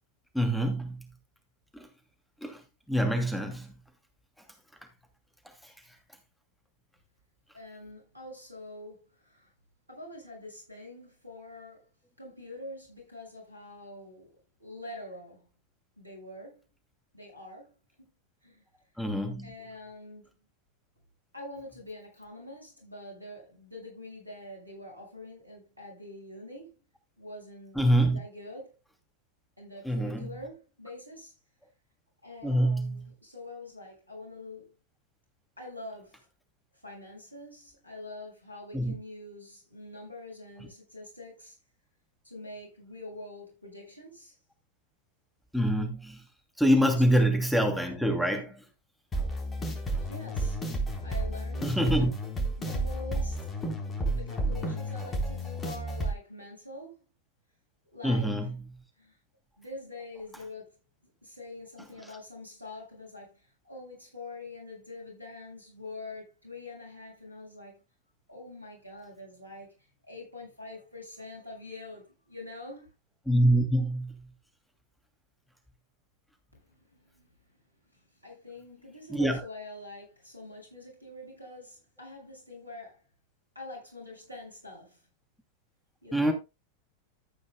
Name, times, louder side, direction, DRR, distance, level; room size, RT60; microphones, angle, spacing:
voice 1, 0.3-1.0 1.7-1.9 2.4-2.6 2.9-3.7 5.6-5.7 19.0-19.5 27.7-28.2 29.8-30.3 32.4-33.0 38.7-38.9 45.5-46.2 46.6-48.6 51.6-52.1 58.0-58.5 73.3-74.1 79.1-79.4 86.1-86.3, equal, ahead, 2.6 m, -25 dB
voice 2, 7.5-9.5 9.9-11.9 12.2-15.5 16.0-16.6 17.1-18.1 18.4-18.6 19.1-19.2 19.4-20.3 21.3-26.7 27.2-27.8 28.1-28.7 29.6-31.4 32.2-34.7 35.6-36.3 36.7-41.6 42.2-44.4 50.0-50.6 51.0-52.1 52.6-53.5 54.1-57.0 57.9-58.3 59.0-59.2 59.6-60.8 61.2-67.8 68.3-72.9 76.5-77.3 77.9-83.0 83.5-85.0 86.0-86.3, left 2 dB, 85° right, 6.7 m, -45 dB
sound 1, 49.1-56.1, right 1 dB, 20° left, 3.9 m, -32 dB
14.0 x 9.4 x 2.2 m
figure-of-eight pair, 90°, 0 cm